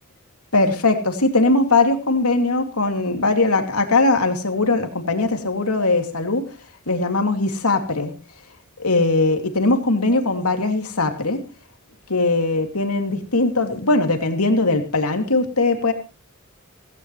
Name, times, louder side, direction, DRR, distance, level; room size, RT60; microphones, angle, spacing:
voice 1, 0.5-6.5 6.9-8.1 8.8-11.4 12.1-15.9, left 2 dB, 90° left, 5 dB, 2.6 m, -20 dB
17.0 x 16.5 x 3.2 m, 0.33 s
head